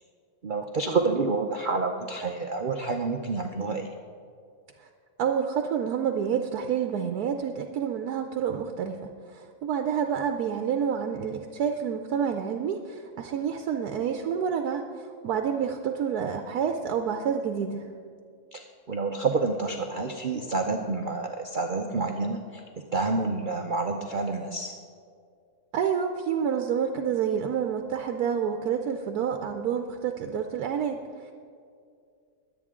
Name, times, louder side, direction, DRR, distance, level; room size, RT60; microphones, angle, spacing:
voice 1, 0.4-3.9 18.5-22.6 22.9-24.8, right 3 dB, 55° right, 4 dB, 0.5 m, -28 dB
voice 2, 5.2-17.9 25.7-31.3, right 7 dB, 75° right, 6 dB, 1.1 m, -28 dB
21.5 x 8.4 x 3.7 m, 2.3 s
omnidirectional pair, 1.7 m